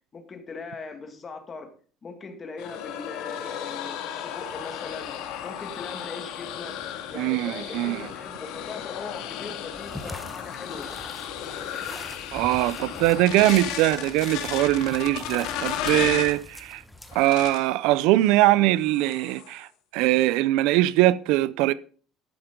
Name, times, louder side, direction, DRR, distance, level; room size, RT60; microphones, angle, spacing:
voice 1, 0.1-1.7 2.0-5.1 5.4-6.8 7.1-10.9, left 4 dB, 25° left, 1.8 m, -40 dB
sound 1, 2.6-16.4 17.1-17.7 18.2-18.5 18.8-19.6, left 10 dB, 70° left, 1.9 m, -35 dB
voice 2, 7.2-8.1 12.3-16.8 17.1-21.7, right 16 dB, 75° right, 0.5 m, -22 dB
sound 2, 9.7-17.3, left 1 dB, 5° left, 1.0 m, -43 dB
11.5 x 8.8 x 3.7 m
cardioid pair, 145°, 0 cm